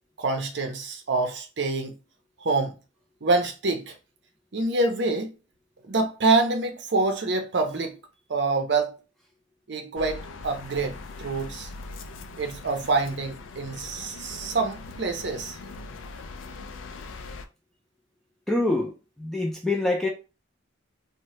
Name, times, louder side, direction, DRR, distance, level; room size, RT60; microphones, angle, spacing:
voice 1, 0.2-1.9 2.4-2.7 3.2-3.9 4.5-5.3 5.9-8.0 8.3-9.0 9.7-11.7 12.4-15.6, right 3 dB, 60° right, 0.6 m, -26 dB
sound 1, 10.0-17.5, left 3 dB, 75° left, 0.4 m, -41 dB
voice 2, 18.5-18.9 19.2-20.1, left 2 dB, ahead, 0.4 m, -25 dB
2.8 x 2.1 x 3.1 m
head